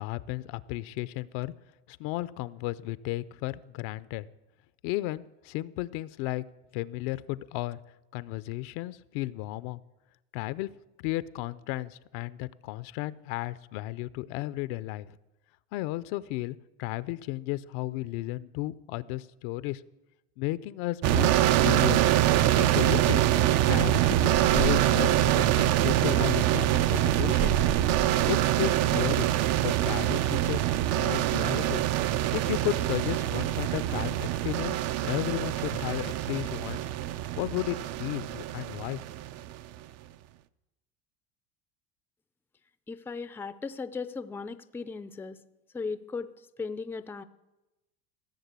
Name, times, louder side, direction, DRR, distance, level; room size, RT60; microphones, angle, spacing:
voice 1, 0.0-1.5 1.9-4.3 4.8-6.4 6.7-7.8 8.1-9.8 10.3-10.7 11.0-15.2 15.7-19.8 20.4-22.1 22.6-27.6 28.2-29.3 29.6-30.6 30.9-31.8 32.3-36.8 37.4-39.0, left 17 dB, 70° left, 17 dB, 0.6 m, -34 dB
sound 1, 21.0-39.7, right 13 dB, 50° right, 0.5 m, -25 dB
sound 2, 22.9-28.3, right 7 dB, 70° right, 6.0 m, -36 dB
voice 2, 42.9-45.4 45.7-47.2, left 4 dB, 5° left, 13 dB, 0.4 m, -37 dB
15.5 x 6.7 x 8.1 m, 1.0 s
supercardioid pair, 120°, 33 cm